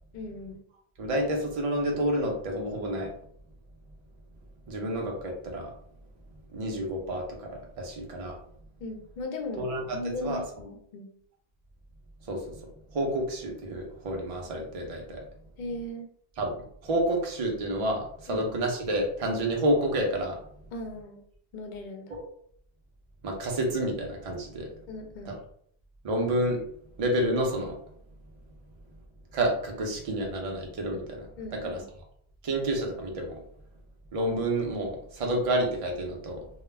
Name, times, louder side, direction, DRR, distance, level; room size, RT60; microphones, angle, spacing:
voice 1, 0.1-0.6 8.8-9.7 9.9-11.1 15.6-16.1 18.3-18.5 20.7-21.2 21.5-22.1 24.9-25.4 31.4-31.8, left 1 dB, 60° left, 3 dB, 0.6 m, -37 dB
voice 2, 1.0-3.1 4.7-5.7 6.5-8.4 9.6-10.4 12.2-12.6 12.9-15.3 16.4-20.4 22.1-22.2 23.2-24.8 25.3-25.4 26.0-26.6 27.0-27.8 29.3-31.8 32.4-33.4 34.1-36.5, right 1 dB, 45° right, 1 dB, 0.5 m, -29 dB
2.2 x 2.0 x 3.1 m, 0.66 s
omnidirectional pair, 1.1 m